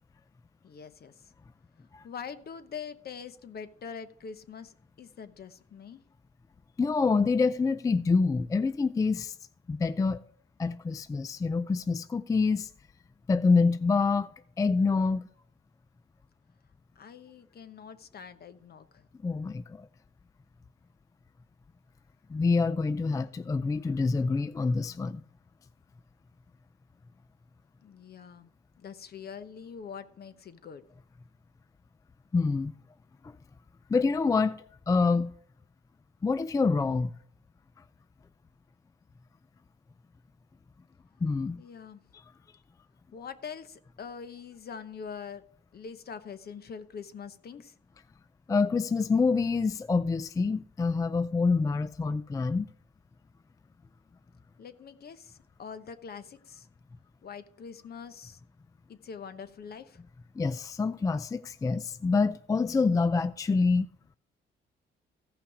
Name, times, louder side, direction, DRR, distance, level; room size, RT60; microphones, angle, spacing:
voice 1, 0.6-1.3 2.0-6.0 16.9-19.1 27.8-28.5 28.8-30.8 41.6-42.0 43.1-45.4 45.7-47.8 54.6-56.7 57.2-58.4 58.9-60.0, left 6 dB, 50° left, 0.9 m, -44 dB
voice 2, 6.8-9.4 9.7-10.2 10.6-12.7 13.3-14.3 14.6-15.2 19.2-19.9 22.3-25.2 32.3-32.7 33.9-35.3 36.2-37.1 41.2-41.6 48.5-52.7 60.4-63.9, left 4 dB, 15° left, 0.3 m, -26 dB
15.0 x 5.8 x 4.9 m
cardioid pair, 90°, 20 cm